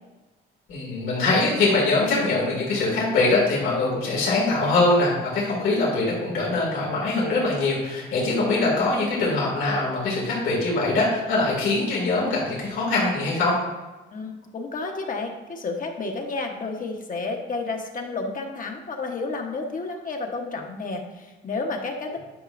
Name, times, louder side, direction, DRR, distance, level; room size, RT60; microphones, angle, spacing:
voice 1, 0.7-13.5, left 2 dB, 85° left, -5 dB, 2.4 m, -23 dB
voice 2, 14.1-22.2, left 3 dB, 45° left, 2 dB, 1.1 m, -31 dB
10.0 x 5.4 x 2.6 m, 1.2 s
cardioid pair, 90°, 20 cm